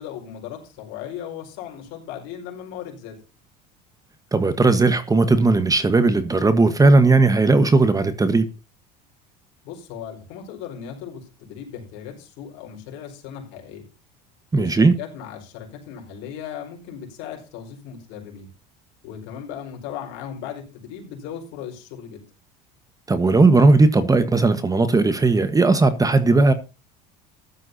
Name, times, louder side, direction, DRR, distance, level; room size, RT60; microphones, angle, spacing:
voice 1, 0.0-3.2 9.6-13.9 14.5-18.5 19.0-22.2, left 9 dB, 70° left, 5.0 m, -37 dB
voice 2, 4.3-8.5 14.5-14.9 23.1-26.5, right 3 dB, 15° right, 1.3 m, -17 dB
15.0 x 12.0 x 2.8 m
supercardioid pair, 95°, 21 cm